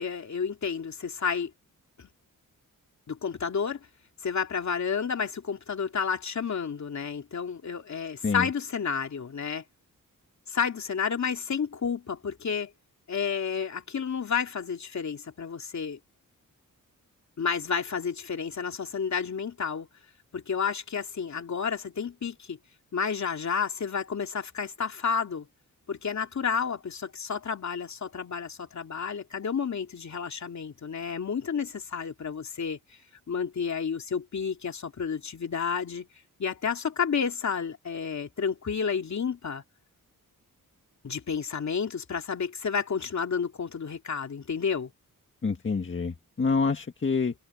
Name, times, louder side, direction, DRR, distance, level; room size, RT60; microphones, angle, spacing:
voice 1, 0.0-1.5 2.0-2.1 3.1-3.9 4.2-9.6 10.5-12.7 13.1-16.0 17.4-19.9 20.3-22.6 22.9-25.5 25.9-32.8 33.3-36.1 36.4-39.6 41.0-44.9, left 6 dB, 55° left, 2.8 m, -31 dB
voice 2, 45.4-47.3, left 4 dB, 35° left, 1.8 m, -27 dB
wide cardioid pair, 130°, 34 cm